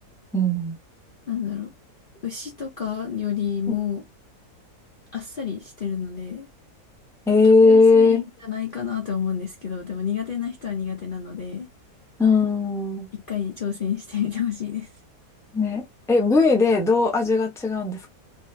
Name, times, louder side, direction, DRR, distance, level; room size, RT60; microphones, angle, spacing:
voice 1, 0.3-0.8 7.3-8.2 12.2-13.1 15.5-18.1, left 3 dB, ahead, 0.7 m, -18 dB
voice 2, 1.3-1.7 2.2-4.0 5.1-6.5 7.6-11.7 13.1-14.9, left 8 dB, 45° left, 0.7 m, -29 dB
3.3 x 2.7 x 3.3 m
omnidirectional pair, 1.7 m